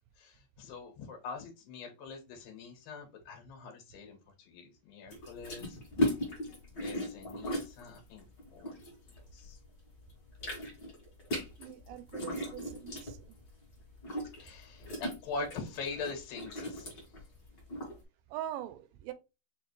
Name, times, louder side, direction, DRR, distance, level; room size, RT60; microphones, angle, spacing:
voice 1, 0.2-5.8 6.7-8.3 8.5-8.8 9.3-9.6 14.4-16.9, left 4 dB, 85° left, 3.0 m, -43 dB
sound 1, 5.1-9.6 9.9-18.0, equal, 45° left, 1.3 m, -37 dB
voice 2, 11.6-13.4 18.3-19.1, right 12 dB, 80° right, 2.1 m, -42 dB
5.9 x 2.3 x 3.1 m
omnidirectional pair, 4.0 m